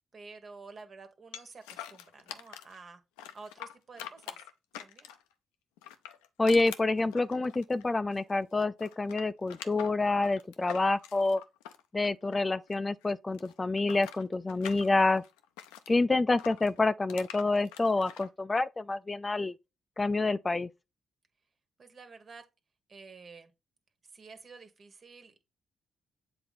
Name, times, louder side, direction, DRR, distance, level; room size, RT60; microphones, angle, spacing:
voice 1, 0.1-3.0 3.3-4.4 4.8-5.1 21.8-22.4 22.9-23.5 24.1-25.4, right 4 dB, 50° right, 1.5 m, -50 dB
sound 1, 1.3-2.8 3.2-5.3 5.8-8.3 8.6-12.7 13.0-15.9 16.4-18.3, left 11 dB, 90° left, 0.5 m, -46 dB
voice 2, 6.4-11.4 11.9-15.2 15.9-19.6 20.0-20.7, left 3 dB, 30° left, 0.4 m, -28 dB
7.7 x 3.8 x 4.0 m
hypercardioid pair, 45°, 0 cm